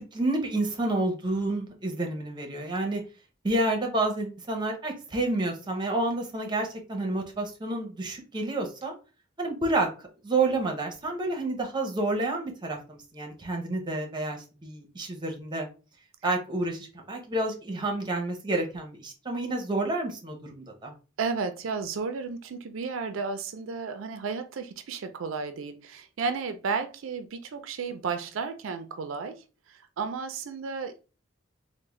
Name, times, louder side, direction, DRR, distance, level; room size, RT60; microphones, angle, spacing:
voice 1, 0.1-3.0 3.4-8.9 9.4-9.9 10.2-15.7 16.2-20.9, right 2 dB, 25° right, 0.8 m, -29 dB
voice 2, 21.2-29.4 29.7-31.0, right 5 dB, 85° right, 0.4 m, -33 dB
3.5 x 2.1 x 3.1 m
head